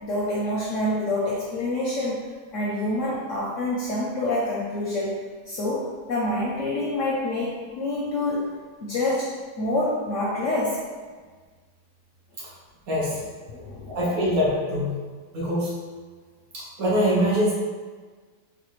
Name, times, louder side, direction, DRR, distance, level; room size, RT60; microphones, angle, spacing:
voice 1, 0.0-2.2 2.5-8.5 8.8-10.8 13.5-14.0, left 1 dB, 65° left, -5 dB, 0.8 m, -27 dB
voice 2, 12.9-13.2 13.9-14.9 15.3-15.7 16.5-17.5, equal, 60° right, -6 dB, 1.3 m, -23 dB
4.1 x 2.4 x 3.0 m, 1.5 s
omnidirectional pair, 1.8 m